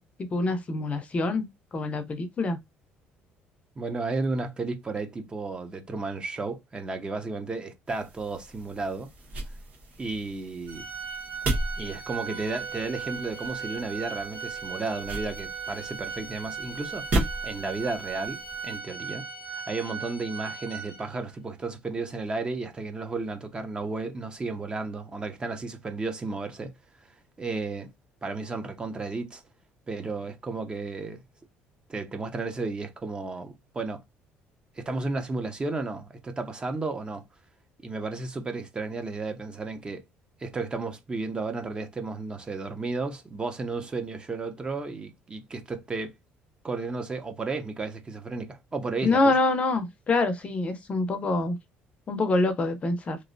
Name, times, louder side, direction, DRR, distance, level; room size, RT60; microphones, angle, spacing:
voice 1, 0.0-1.5 1.7-2.6 49.0-51.6 52.1-53.2, left 2 dB, 30° left, 0.6 m, -26 dB
voice 2, 3.8-9.1 10.0-10.9 11.8-19.2 19.5-26.7 27.4-27.9 28.2-29.4 29.9-31.2 31.9-34.0 34.8-37.2 37.8-40.0 40.4-46.1 46.6-49.4, right 3 dB, 25° right, 0.7 m, -33 dB
sound 1, 7.9-18.8, right 1 dB, 45° right, 1.4 m, -36 dB
Organ, 10.7-21.3, right 6 dB, 85° right, 1.3 m, -38 dB
sound 2, 12.2-19.7, right 7 dB, 60° right, 1.3 m, -50 dB
3.1 x 2.5 x 2.6 m
cardioid pair, 115°, 4 cm